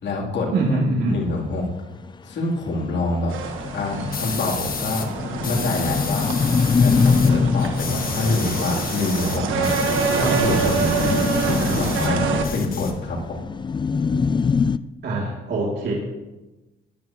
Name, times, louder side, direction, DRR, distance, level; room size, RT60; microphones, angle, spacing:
voice 1, 0.0-0.5 1.1-1.7 2.2-3.3 3.7-5.1 5.4-6.3 6.8-9.8 10.1-12.2 12.5-13.4, left 3 dB, 65° left, -2 dB, 3.1 m, -26 dB
voice 2, 0.5-1.2 15.0-15.9, right 2 dB, 60° right, -4 dB, 2.7 m, -23 dB
sound 1, 2.1-2.2 2.5-2.6 2.9-3.0 3.2-14.8, left 5 dB, 25° left, 0.4 m, -24 dB
sound 2, 3.3-12.4, right 6 dB, 80° right, 1.3 m, -26 dB
sound 3, 4.1-5.1 5.4-7.3 7.6-12.1 12.4-13.4, left 6 dB, 45° left, 1.4 m, -32 dB
15.0 x 11.0 x 3.0 m, 1.1 s
cardioid pair, 90°, 20 cm